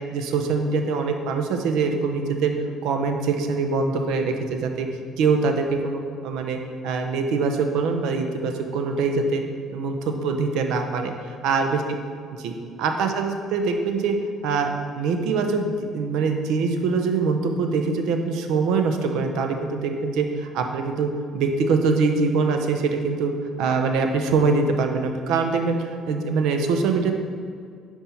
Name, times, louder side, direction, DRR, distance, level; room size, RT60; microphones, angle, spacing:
voice 1, 0.1-2.5 2.8-4.9 5.2-9.4 9.7-11.8 12.4-12.5 12.8-14.2 14.4-14.7 14.9-23.3 23.6-27.1, right 4 dB, 80° right, 5 dB, 0.6 m, -23 dB
5.3 x 4.4 x 4.4 m, 2.1 s
supercardioid pair, 80°, 0 cm